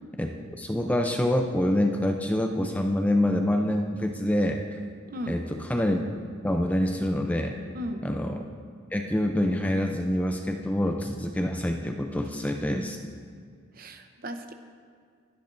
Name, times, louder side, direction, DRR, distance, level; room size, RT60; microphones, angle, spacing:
voice 1, 0.2-4.6 5.3-6.0 6.4-7.6 8.0-8.4 8.9-13.0, left 1 dB, 5° left, 3 dB, 0.5 m, -26 dB
voice 2, 13.7-14.5, equal, 45° right, 7 dB, 0.8 m, -35 dB
21.0 x 10.5 x 2.6 m, 2.1 s
head